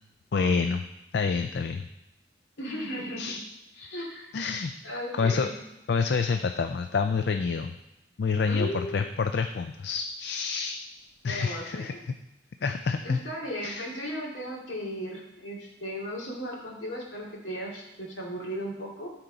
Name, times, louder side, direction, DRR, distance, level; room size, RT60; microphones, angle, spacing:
voice 1, 0.3-0.8 1.1-1.8 3.2-3.4 4.3-4.7 5.2-5.5 5.9-7.7 8.2-10.8 11.2-11.9 12.6-13.2 13.6-13.9, left 5 dB, 60° left, 7 dB, 0.4 m, -27 dB
voice 2, 2.6-3.2 3.8-4.3 4.8-5.5 8.4-9.0 11.2-12.0 13.0-19.1, equal, 80° left, -3 dB, 2.4 m, -36 dB
13.0 x 4.4 x 4.0 m, 0.92 s
head